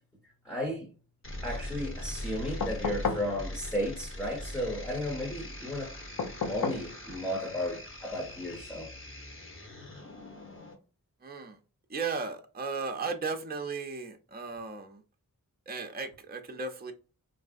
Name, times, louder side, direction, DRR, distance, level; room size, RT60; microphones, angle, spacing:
voice 1, 0.4-0.9 1.4-5.9 6.5-8.9, left 1 dB, 5° left, 0.8 m, -34 dB
sound 1, 1.2-10.7, left 1 dB, 35° left, 1.0 m, -41 dB
sound 2, 2.6-3.3 6.2-6.9 8.5-8.6, left 5 dB, 70° left, 0.6 m, -32 dB
voice 2, 11.2-11.6 11.9-15.0 15.7-16.9, right 4 dB, 30° right, 0.5 m, -35 dB
3.2 x 2.6 x 2.4 m
wide cardioid pair, 90°, 34 cm